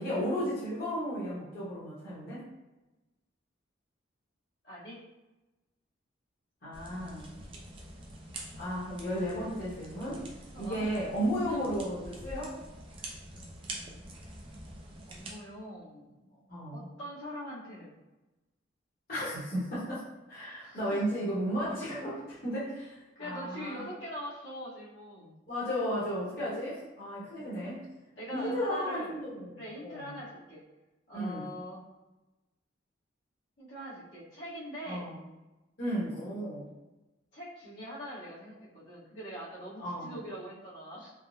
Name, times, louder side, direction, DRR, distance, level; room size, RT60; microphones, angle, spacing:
voice 1, 0.0-2.5 6.6-7.3 8.6-10.2 10.6-12.5 16.5-16.8 19.1-20.0 20.3-22.9 23.2-23.8 25.5-27.8 28.3-30.0 31.1-31.5 34.8-35.1 35.8-36.6 39.8-40.1, equal, 50° left, -10 dB, 1.0 m, -34 dB
voice 2, 4.6-5.0 10.5-10.9 11.5-11.6 15.1-16.4 16.7-18.0 20.6-21.0 22.8-22.9 23.1-25.3 28.2-29.2 29.6-30.6 31.1-31.8 33.6-35.1 37.3-41.1, equal, 75° left, -9 dB, 1.2 m, -43 dB
sound 1, 6.7-15.4, right 1 dB, 25° right, 0.4 m, -46 dB
3.5 x 2.0 x 2.6 m, 1.1 s
head